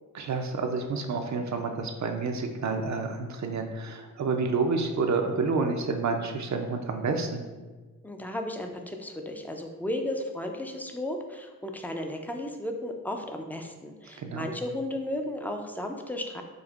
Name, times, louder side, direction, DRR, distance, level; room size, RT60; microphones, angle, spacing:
voice 1, 0.1-7.5 14.2-14.5, right 4 dB, 50° right, 4 dB, 0.5 m, -29 dB
voice 2, 8.0-16.4, left 1 dB, 5° left, 4 dB, 0.4 m, -34 dB
5.1 x 2.4 x 2.4 m, 1.3 s
cardioid pair, 50°, 36 cm